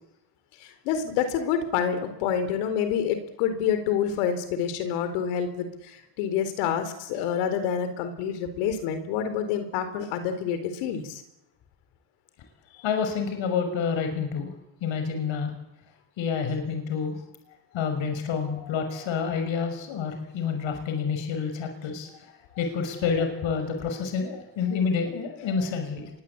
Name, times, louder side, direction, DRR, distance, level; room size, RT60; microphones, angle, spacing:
voice 1, 0.6-11.2 18.5-18.7 19.3-19.4 25.4-25.7, left 8 dB, 90° left, 10 dB, 4.2 m, -28 dB
voice 2, 12.8-14.5 14.8-15.5 16.2-17.2 17.7-22.1 22.6-26.1, left 6 dB, 70° left, 6 dB, 6.3 m, -28 dB
26.5 x 23.0 x 8.8 m, 0.85 s
supercardioid pair, 85°, 48 cm